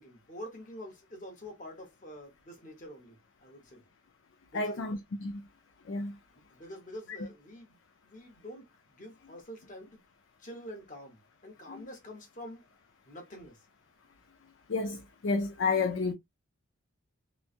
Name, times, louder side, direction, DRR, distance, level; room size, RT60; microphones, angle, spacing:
voice 1, 0.0-3.8 4.5-4.9 6.5-7.8 8.0-10.0 10.4-12.7 13.0-13.7, equal, 40° left, 1.0 m, -46 dB
voice 2, 4.5-5.4 5.9-6.2 7.1-7.2 11.7-11.8 14.7-16.1, left 4 dB, 65° left, 0.5 m, -31 dB
3.1 x 2.2 x 2.4 m
head